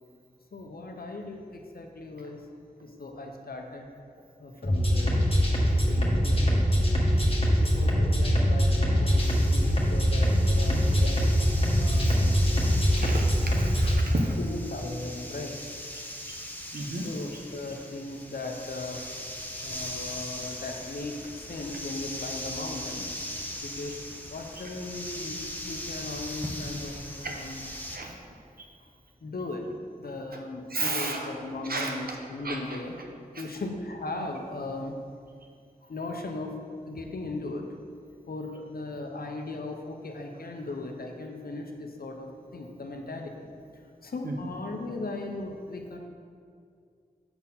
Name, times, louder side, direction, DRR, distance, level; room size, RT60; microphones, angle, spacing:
voice 1, 0.5-2.4 2.8-3.9 4.4-5.2 5.7-6.9 7.6-11.2 11.8-12.4 14.4-15.5 17.0-19.1 19.6-23.1 23.6-23.9 24.3-27.7 29.2-33.0 33.4-35.0 35.9-36.6 36.9-37.7 38.3-43.5 44.0-46.0, left 2 dB, 70° left, 3 dB, 0.8 m, -37 dB
sound 1, 4.6-13.9, equal, 35° left, 1.4 m, -23 dB
sound 2, 9.2-28.0, left 1 dB, 10° left, 0.9 m, -39 dB
voice 2, 13.0-14.3 16.7-17.0 27.9-28.1 30.7-31.3 31.7-31.9 32.4-32.6, right 2 dB, 70° right, 0 dB, 1.0 m, -32 dB
6.8 x 4.3 x 5.6 m, 2.2 s
wide cardioid pair, 50°, 16 cm